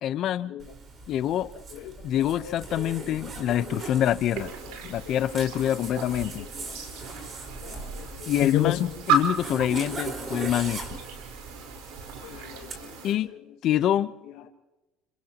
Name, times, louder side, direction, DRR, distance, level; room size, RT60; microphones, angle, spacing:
voice 1, 0.0-0.5 1.1-1.5 2.0-4.5 4.8-6.5 8.3-8.8 9.1-10.9 13.0-13.3 13.6-14.1, left 11 dB, 55° left, 1.0 m, -25 dB
Zipper (clothing), 0.6-12.8, right 3 dB, 40° right, 4.9 m, -40 dB
voice 2, 1.7-3.1 3.7-3.8 4.7-5.3 5.6-6.8 7.4-8.9 12.2-13.4 14.3-14.5, left 13 dB, 75° left, 2.0 m, -35 dB
sound 1, 4.3-13.1, right 4 dB, 80° right, 4.7 m, -34 dB
30.0 x 29.0 x 3.1 m
supercardioid pair, 110°, 0 cm